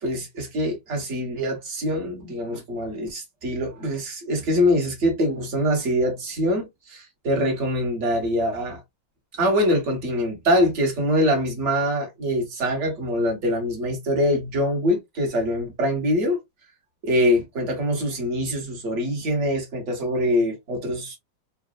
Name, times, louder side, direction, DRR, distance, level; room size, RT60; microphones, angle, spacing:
voice 1, 0.0-8.8 9.4-16.4 17.0-21.2, equal, 45° right, 1.4 m, -24 dB
3.9 x 2.2 x 2.4 m
omnidirectional pair, 2.0 m